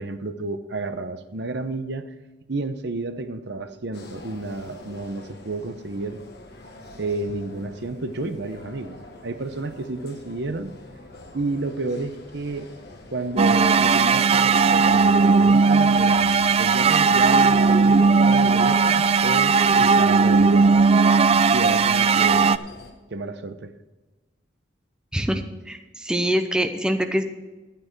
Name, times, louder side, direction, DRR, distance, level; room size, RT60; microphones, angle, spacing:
voice 1, 0.0-2.0 2.5-6.2 7.0-9.0 9.2-10.7 11.3-12.7 13.1-16.2 16.6-20.8 21.5-22.5 23.1-23.7, right 2 dB, 65° right, 9 dB, 0.8 m, -31 dB
sound 1, 3.9-22.9, left 2 dB, 60° left, 1.6 m, -44 dB
sound 2, 13.4-22.6, right 4 dB, 30° right, 0.3 m, -17 dB
voice 2, 25.1-27.2, equal, 5° right, 6 dB, 0.7 m, -24 dB
12.0 x 9.2 x 4.6 m, 1.2 s
head